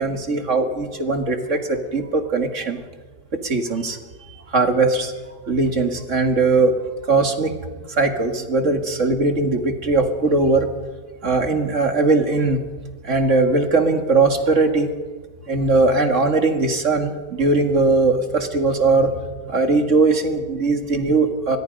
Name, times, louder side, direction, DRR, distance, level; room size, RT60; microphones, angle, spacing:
voice 1, 0.0-2.8 3.3-4.0 4.5-5.1 5.5-6.8 7.1-7.6 7.9-10.7 11.2-12.6 13.0-14.9 15.5-19.1 19.4-21.6, right 3 dB, 45° right, 6 dB, 2.2 m, -19 dB
25.0 x 21.5 x 5.3 m, 1.4 s
omnidirectional pair, 1.9 m